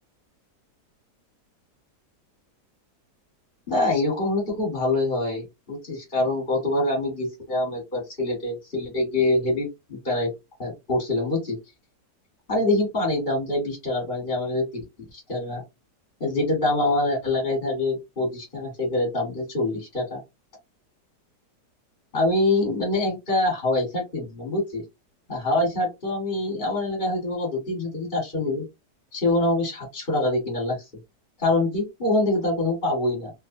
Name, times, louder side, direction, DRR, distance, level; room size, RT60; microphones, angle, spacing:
voice 1, 3.7-10.3 10.6-11.6 12.5-14.8 15.1-15.6 16.2-20.2 22.1-24.8 25.3-28.6 29.1-30.8 31.4-33.3, left 2 dB, 35° left, -2 dB, 1.2 m, -25 dB
2.9 x 2.0 x 2.5 m, 0.22 s
omnidirectional pair, 1.8 m